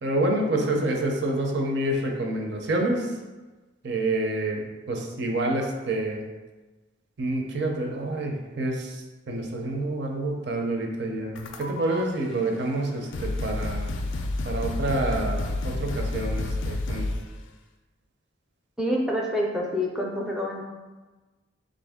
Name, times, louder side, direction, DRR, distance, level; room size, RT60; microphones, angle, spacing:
voice 1, 0.0-3.1 3.8-6.2 7.2-13.9 14.4-17.1, right 2 dB, 55° right, 1 dB, 0.5 m, -28 dB
sound 1, 11.3-12.0 12.7-12.8 13.1-17.3, left 2 dB, 65° left, 0.4 m, -30 dB
voice 2, 18.8-20.6, equal, 5° right, -2 dB, 0.4 m, -27 dB
3.7 x 2.5 x 3.5 m, 1.2 s
head